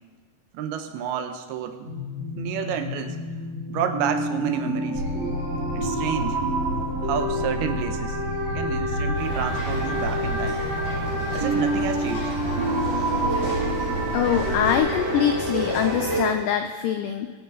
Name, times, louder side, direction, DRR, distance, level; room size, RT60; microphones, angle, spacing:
voice 1, 0.5-1.9 2.4-3.2 3.7-5.0 5.7-6.4 7.0-8.2 8.5-10.7 11.3-12.3, right 8 dB, 85° right, 7 dB, 2.8 m, -30 dB
sound 1, 1.8-16.3, right 1 dB, 30° right, 2.9 m, -28 dB
sound 2, 4.9-14.8, equal, 60° right, 2.9 m, -32 dB
sound 3, 9.1-16.2, equal, 65° left, 6.8 m, -33 dB
voice 2, 14.1-17.3, left 9 dB, 90° left, 7 dB, 1.8 m, -24 dB
23.5 x 9.1 x 3.9 m, 1.4 s
omnidirectional pair, 4.6 m